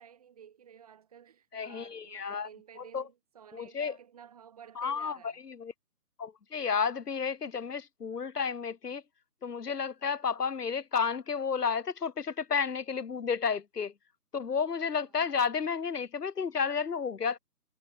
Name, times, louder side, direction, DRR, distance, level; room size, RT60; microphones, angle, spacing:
voice 1, 0.0-5.4 14.9-15.2, right 8 dB, 25° right, 2.8 m, -53 dB
voice 2, 1.5-2.5 2.9-3.0 3.5-3.9 4.8-5.2 5.5-5.7 6.2-9.0 9.4-13.9 14.3-17.4, left 6 dB, 90° left, 0.7 m, -31 dB
figure-of-eight pair, 155°, 46 cm